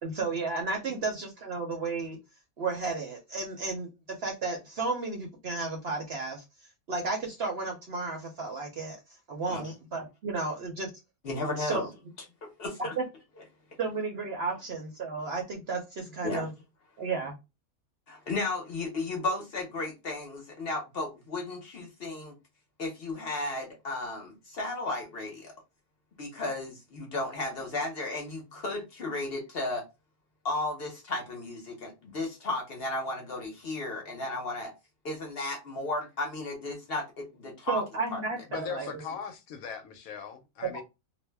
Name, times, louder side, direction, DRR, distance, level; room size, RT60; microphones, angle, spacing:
voice 1, 0.0-2.2 2.6-6.4 6.9-9.0 9.3-10.9 11.6-11.8 13.0-13.1 13.8-16.5 17.0-17.4 37.7-39.0 40.6-40.7, right 3 dB, 60° right, 0.7 m, -33 dB
voice 2, 11.2-11.9 12.6-12.9 16.2-16.4 18.1-22.3 22.8-25.5 26.2-29.8 30.4-34.7 35.0-37.8 38.1-38.2, left 2 dB, 50° left, 0.8 m, -34 dB
voice 3, 38.5-40.8, left 7 dB, 75° left, 1.0 m, -39 dB
2.5 x 2.1 x 3.2 m
omnidirectional pair, 1.5 m